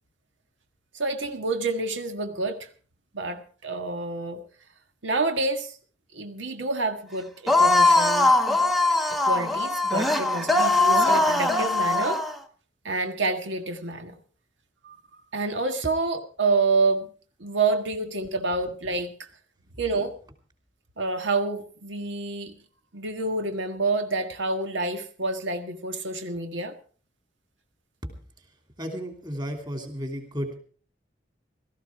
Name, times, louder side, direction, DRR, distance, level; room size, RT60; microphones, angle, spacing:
voice 1, 0.9-2.7 3.1-4.4 5.0-5.8 6.1-8.3 9.1-12.2 12.8-14.2 14.8-15.0 15.3-17.1 17.4-19.3 19.8-20.1 21.0-22.5 22.9-26.7, right 3 dB, 80° right, 6 dB, 1.7 m, -28 dB
sound 1, 7.5-12.4, left 2 dB, ahead, 1.2 m, -21 dB
voice 2, 28.8-30.6, equal, 20° right, 5 dB, 3.0 m, -33 dB
17.0 x 14.0 x 4.8 m, 0.42 s
head